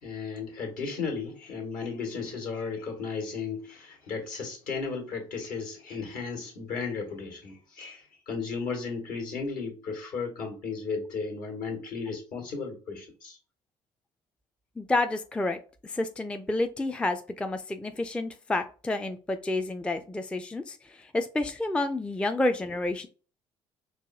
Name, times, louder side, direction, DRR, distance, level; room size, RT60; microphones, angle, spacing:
voice 1, 0.0-13.4, left 5 dB, 60° left, 1.4 m, -35 dB
voice 2, 14.8-23.1, left 2 dB, 5° left, 0.4 m, -30 dB
4.6 x 2.3 x 2.6 m
hypercardioid pair, 55°, 16 cm